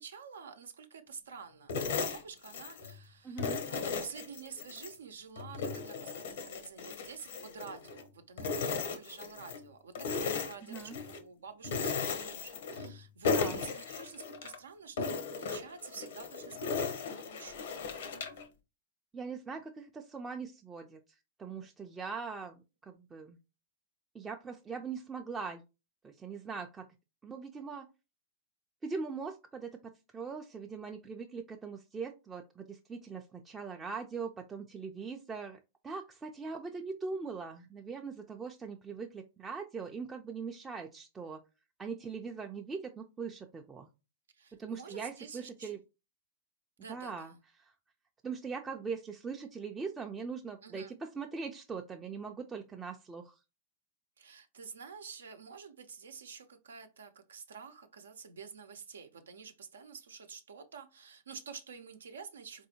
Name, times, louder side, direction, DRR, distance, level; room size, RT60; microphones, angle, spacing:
voice 1, 0.0-18.0 44.4-45.8 46.8-47.4 50.6-50.9 54.2-62.7, right 6 dB, 80° right, 7 dB, 0.6 m, -49 dB
sound 1, 1.7-3.0 3.4-5.0 5.4-8.1 8.4-9.6 10.0-11.2 11.6-13.0 13.2-14.6 15.0-18.4, left 5 dB, 70° left, 0.7 m, -36 dB
voice 2, 3.2-3.7 10.6-11.0 13.3-13.6 19.1-21.0 21.4-23.4 24.1-25.6 26.0-26.9 27.2-27.9 28.8-29.8 30.1-35.6 35.8-41.4 41.8-43.9 44.6-45.8 46.9-47.7 48.2-53.4, right 5 dB, 15° right, 2 dB, 0.4 m, -41 dB
4.1 x 2.6 x 2.8 m, 0.27 s
hypercardioid pair, 105°, 0 cm